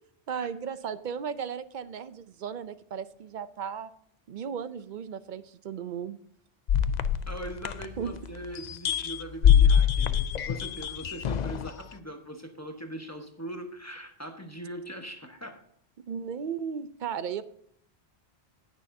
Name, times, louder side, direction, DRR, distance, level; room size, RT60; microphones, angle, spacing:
voice 1, 0.3-3.9 4.3-6.2 8.0-8.1 16.1-17.4, right 7 dB, 55° right, 14 dB, 0.6 m, -35 dB
sound 1, 6.7-8.3 8.6-11.7, left 8 dB, 55° left, 0.5 m, -24 dB
voice 2, 7.3-15.6, right 1 dB, 15° left, 4 dB, 1.1 m, -41 dB
18.5 x 6.4 x 2.7 m, 0.69 s
omnidirectional pair, 1.1 m